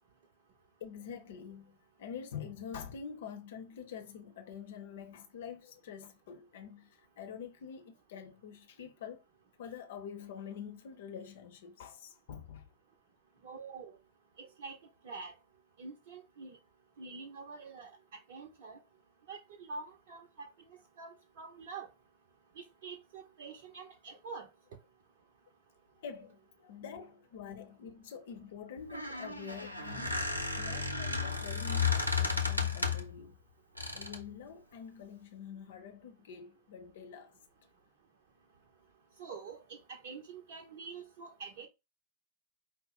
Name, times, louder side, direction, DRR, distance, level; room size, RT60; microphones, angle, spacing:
voice 1, 0.8-9.2 9.6-12.7 26.0-33.4 33.9-37.3, left 7 dB, 55° left, 0.9 m, -46 dB
voice 2, 13.4-13.9 14.4-14.8 15.0-15.3 15.8-16.6 17.0-18.8 19.3-21.9 22.6-24.5 39.2-41.7, right 4 dB, 55° right, 0.7 m, -46 dB
Squeak, 28.8-33.2 33.8-34.3, left 4 dB, 90° right, 0.7 m, -33 dB
5.2 x 2.1 x 4.1 m
figure-of-eight pair, 90°, 0 cm